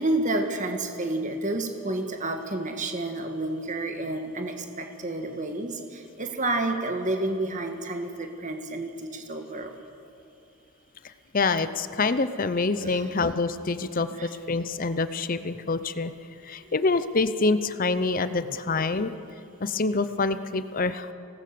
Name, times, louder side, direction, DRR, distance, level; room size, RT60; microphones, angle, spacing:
voice 1, 0.0-9.7 12.8-13.0 14.2-14.3 18.7-18.9, right 2 dB, 35° right, 5 dB, 1.6 m, -30 dB
voice 2, 11.3-16.1 16.4-19.1 19.6-21.1, left 3 dB, 40° left, 12 dB, 0.7 m, -26 dB
24.5 x 18.5 x 6.8 m, 2.7 s
head